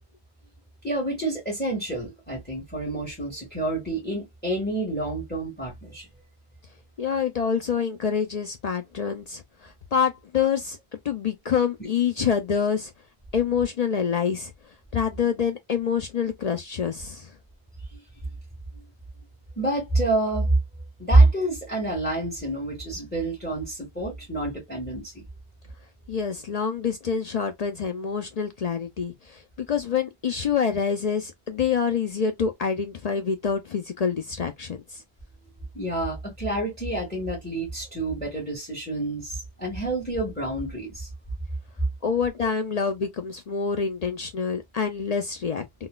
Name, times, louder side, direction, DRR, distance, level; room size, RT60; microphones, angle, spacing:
voice 1, 0.8-6.1 17.9-18.0 18.7-18.8 19.6-20.5 21.0-25.2 35.7-41.1 42.4-42.5, right 2 dB, 10° left, 1.6 m, -27 dB
voice 2, 7.0-10.8 11.0-12.9 13.3-14.5 14.9-17.3 26.1-29.4 29.7-35.0 42.0-45.7, left 6 dB, 60° left, 0.4 m, -26 dB
3.8 x 2.3 x 2.2 m
omnidirectional pair, 1.1 m